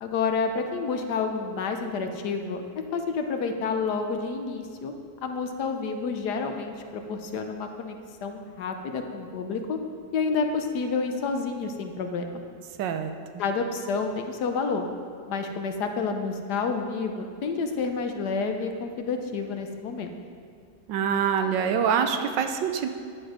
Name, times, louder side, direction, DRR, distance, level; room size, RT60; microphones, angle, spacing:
voice 1, 0.0-2.6 2.9-4.9 5.2-9.8 10.1-12.4 13.4-14.9 15.3-20.1, left 4 dB, 70° left, 5 dB, 1.4 m, -29 dB
voice 2, 12.8-13.1 20.9-22.9, right 7 dB, 85° right, 7 dB, 1.4 m, -25 dB
10.5 x 8.0 x 5.0 m, 2.2 s
omnidirectional pair, 1.9 m